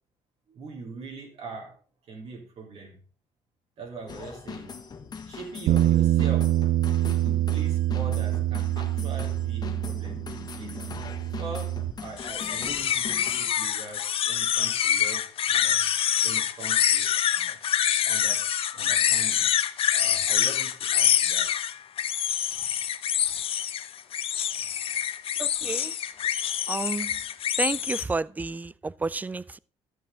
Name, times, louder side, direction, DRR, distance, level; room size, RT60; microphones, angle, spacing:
voice 1, 0.5-1.8 2.1-3.0 3.8-4.8 5.2-6.5 7.0-10.9 11.2-15.8 16.2-17.1 17.3-17.6 18.0-18.4 18.7-19.5 19.9-21.5, right 3 dB, 60° right, 3.3 m, -42 dB
sound 1, 4.1-13.5, left 5 dB, 35° left, 1.2 m, -41 dB
Bass guitar, 5.7-11.9, right 14 dB, 80° right, 0.4 m, -25 dB
sound 2, 12.2-28.0, left 10 dB, 55° left, 0.7 m, -26 dB
voice 2, 25.4-26.0 26.7-27.2 27.6-29.6, right 3 dB, 15° right, 0.3 m, -31 dB
13.5 x 6.8 x 3.7 m
cardioid pair, 110°, 12 cm